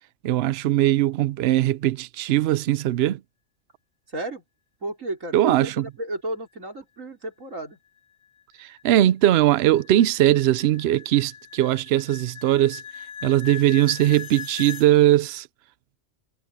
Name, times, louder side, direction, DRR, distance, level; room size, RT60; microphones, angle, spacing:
voice 1, 0.2-3.2 5.3-5.9 8.6-12.8 13.2-15.5, right 13 dB, 65° right, 0.7 m, -20 dB
voice 2, 4.1-4.4 4.8-7.8, right 1 dB, 90° right, 5.2 m, -33 dB
sound 1, 7.7-14.9, left 7 dB, 80° left, 1.6 m, -40 dB
omnidirectional pair, 1.3 m